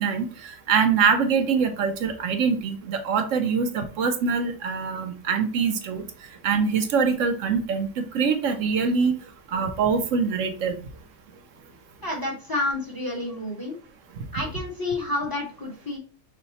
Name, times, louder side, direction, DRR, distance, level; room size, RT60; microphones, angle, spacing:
voice 1, 0.0-6.0 6.4-9.1 9.5-10.8, right 5 dB, 75° right, 7 dB, 1.0 m, -24 dB
voice 2, 12.0-13.8 14.3-16.0, left 2 dB, 15° left, -1 dB, 1.1 m, -29 dB
5.6 x 2.2 x 4.0 m, 0.38 s
omnidirectional pair, 1.3 m